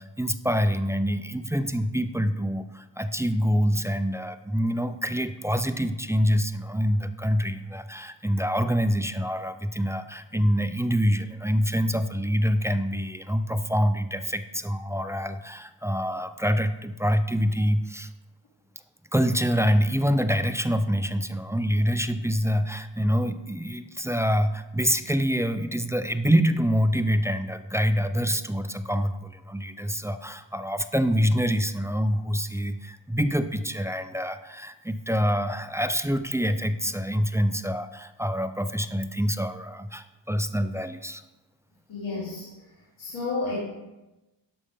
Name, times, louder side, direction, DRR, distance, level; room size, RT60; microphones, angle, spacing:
voice 1, 0.0-18.1 19.1-41.2, equal, 5° right, 10 dB, 0.4 m, -26 dB
voice 2, 41.9-42.5 43.0-43.6, left 3 dB, 80° left, -10 dB, 2.9 m, -31 dB
11.0 x 6.4 x 3.7 m, 1.0 s
cardioid pair, 75°, 47 cm